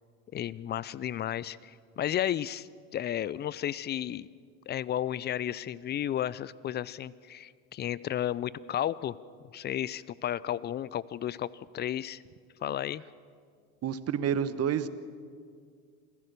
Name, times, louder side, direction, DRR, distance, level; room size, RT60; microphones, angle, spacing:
voice 1, 0.3-4.3 4.7-9.2 9.5-11.5 11.7-12.2 12.6-13.0, left 11 dB, 25° left, 20 dB, 0.4 m, -33 dB
voice 2, 13.8-14.9, right 8 dB, 35° right, 14 dB, 1.1 m, -29 dB
27.0 x 15.0 x 6.8 m, 2.2 s
hypercardioid pair, 85°, 43 cm